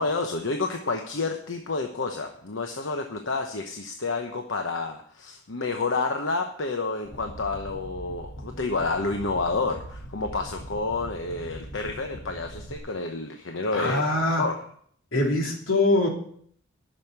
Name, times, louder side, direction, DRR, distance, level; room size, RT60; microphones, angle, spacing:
voice 1, 0.0-14.0 14.4-14.6, left 3 dB, 65° left, 4 dB, 1.0 m, -29 dB
sound 1, 7.1-12.8, equal, 50° left, 2.4 m, -41 dB
voice 2, 13.7-14.4 15.1-16.1, left 2 dB, 85° left, 1 dB, 2.9 m, -23 dB
10.5 x 6.5 x 8.0 m, 0.62 s
head